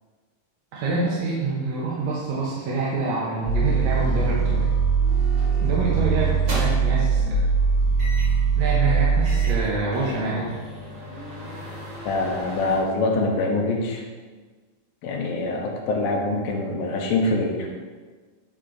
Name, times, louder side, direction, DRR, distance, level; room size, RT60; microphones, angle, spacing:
voice 1, 0.7-4.7 5.6-7.5 8.6-10.5, right 3 dB, 65° right, -5 dB, 2.0 m, -26 dB
sound 1, 3.5-9.6, right 5 dB, 85° right, 3.1 m, -21 dB
sound 2, 5.4-5.6 6.2-7.0 8.0-8.4 8.9-9.0 9.2-12.8, equal, 35° right, 2.9 m, -36 dB
voice 2, 12.1-14.0 15.0-17.7, left 2 dB, 80° left, 1 dB, 2.6 m, -24 dB
10.0 x 4.4 x 3.9 m, 1.4 s
omnidirectional pair, 4.1 m